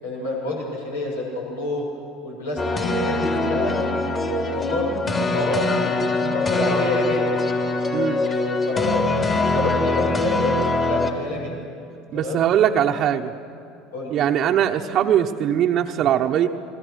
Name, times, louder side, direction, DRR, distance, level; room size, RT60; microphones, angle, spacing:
voice 1, 0.0-1.8 2.2-2.6 2.9-3.7 4.5-7.3 8.1-10.5 10.8-11.5 12.1-12.5 13.9-14.1, left 1 dB, 85° left, -3 dB, 6.3 m, -27 dB
sound 1, 2.6-11.1, left 2 dB, 30° left, 3.4 m, -23 dB
voice 2, 7.9-8.2 12.1-13.3 14.1-16.5, right 10 dB, 50° right, 3 dB, 1.0 m, -20 dB
28.5 x 21.5 x 6.4 m, 2.7 s
hypercardioid pair, 70°, 0 cm